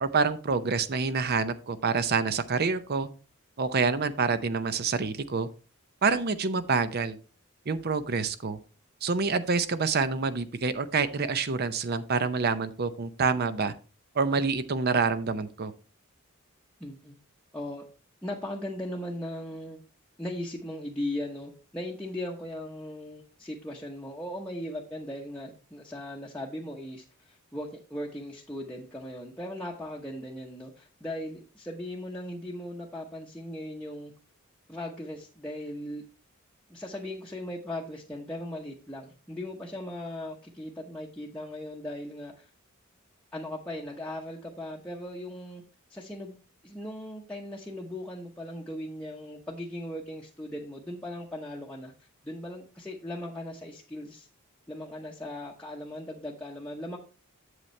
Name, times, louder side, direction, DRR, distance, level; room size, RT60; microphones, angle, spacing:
voice 1, 0.0-3.1 3.6-5.5 6.0-7.2 7.7-8.6 9.0-13.7 14.2-15.7, right 4 dB, 50° right, 12 dB, 0.6 m, -27 dB
voice 2, 16.8-17.2 17.5-17.8 18.2-19.8 20.2-34.1 34.7-36.0 36.7-42.5 43.3-45.6 45.9-46.3 46.6-54.3 54.7-57.0, left 1 dB, 5° left, -4 dB, 0.9 m, -38 dB
8.0 x 7.2 x 3.2 m, 0.35 s
head